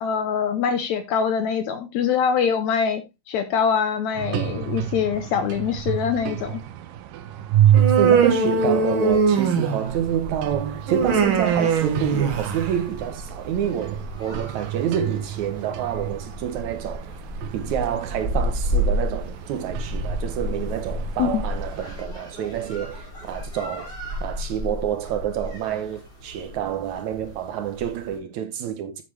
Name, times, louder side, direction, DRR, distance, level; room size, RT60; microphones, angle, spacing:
voice 1, 0.0-3.0 3.3-6.6 21.2-21.4, left 7 dB, 75° left, 1.8 m, -23 dB
sound 1, 4.1-22.0, right 11 dB, 85° right, 2.4 m, -29 dB
Human voice, 7.7-10.0 10.9-12.7, right 5 dB, 55° right, 1.6 m, -21 dB
voice 2, 8.0-17.1 17.5-23.9 24.2-29.0, right 9 dB, 70° right, 2.0 m, -28 dB
sound 2, 9.9-28.2, equal, 10° left, 4.9 m, -33 dB
8.1 x 7.7 x 3.2 m
omnidirectional pair, 3.8 m